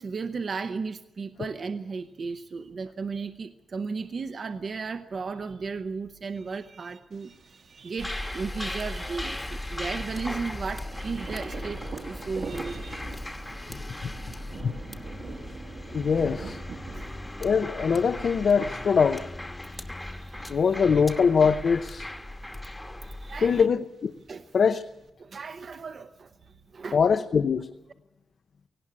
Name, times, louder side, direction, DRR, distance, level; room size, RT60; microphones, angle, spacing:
voice 1, 0.0-13.1 16.9-17.3 19.7-20.6 23.0-23.7 24.3-24.5 25.2-27.0, right 4 dB, 50° right, 0.7 m, -35 dB
Thunder, 7.1-25.1, right 4 dB, 65° right, 1.6 m, -45 dB
sound 1, 8.0-23.6, left 1 dB, 10° left, 1.1 m, -37 dB
voice 2, 13.7-14.1 14.6-14.8 15.9-16.6 17.4-19.3 20.5-22.1 23.4-24.1 24.5-24.8 26.9-27.7, left 6 dB, 60° left, 0.7 m, -23 dB
18.0 x 17.0 x 9.8 m
wide cardioid pair, 140°, 0 cm